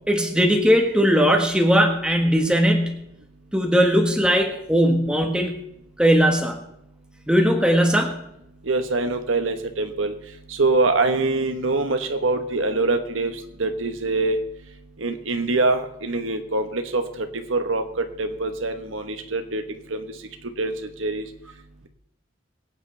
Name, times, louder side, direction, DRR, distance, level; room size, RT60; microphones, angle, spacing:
voice 1, 0.1-3.0 3.5-5.6 6.0-6.6 7.3-8.2, equal, 5° right, 3 dB, 1.4 m, -19 dB
voice 2, 8.7-10.1 10.5-13.3 13.6-14.4 15.0-19.6 19.9-20.0 20.6-20.7 21.0-21.2, right 3 dB, 80° right, 7 dB, 1.2 m, -24 dB
22.5 x 9.0 x 3.4 m, 0.78 s
head